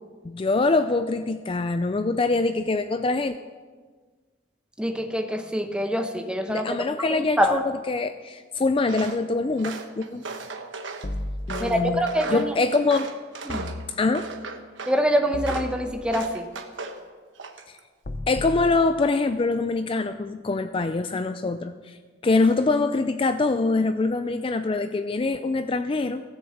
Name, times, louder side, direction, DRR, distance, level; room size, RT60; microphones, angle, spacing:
voice 1, 0.2-3.4 6.5-10.2 11.5-12.0 12.3-13.1 14.0-14.3 17.7-17.8 18.3-22.0 22.2-26.2, left 3 dB, 30° left, 10 dB, 0.4 m, -24 dB
voice 2, 4.8-6.7 7.1-7.6 11.6-12.5 13.5-13.7 14.9-16.5, equal, 5° right, 5 dB, 0.9 m, -25 dB
Walk footsteps, 8.9-9.2 9.6-11.1 11.5-13.8 14.1-15.0 15.4-15.7 16.1-17.0 17.4-17.8, right 4 dB, 80° right, 1.2 m, -36 dB
sound 1, 11.0-12.1 13.5-14.5 15.3-16.4 18.0-19.5, left 1 dB, 50° left, 0.8 m, -35 dB
16.0 x 7.0 x 7.9 m, 1.5 s
head